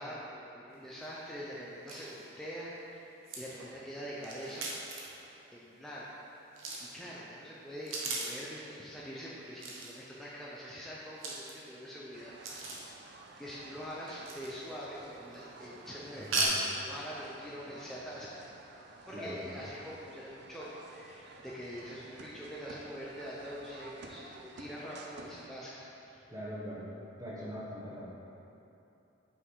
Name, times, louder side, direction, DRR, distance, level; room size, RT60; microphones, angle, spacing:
voice 1, 0.0-3.0 3.4-4.7 5.5-6.1 6.8-12.9 13.4-18.5 19.1-26.2, equal, ahead, -7 dB, 0.5 m, -44 dB
sound 1, 0.7-0.8 1.0-1.1 1.6-1.7 1.9-2.4 3.2-5.2 6.5-7.0 7.7-8.5 9.6-10.0 11.1-11.9 12.4-13.0 14.2-14.8 15.1-15.5 16.2-16.4, right 3 dB, 75° right, 1.0 m, -39 dB
sound 2, 12.1-25.5, right 3 dB, 55° right, 0.4 m, -53 dB
voice 2, 16.2-16.6 18.9-19.6 26.3-26.9 27.2-28.1, equal, 15° right, -6 dB, 1.1 m, -42 dB
5.6 x 5.1 x 4.8 m, 2.9 s
head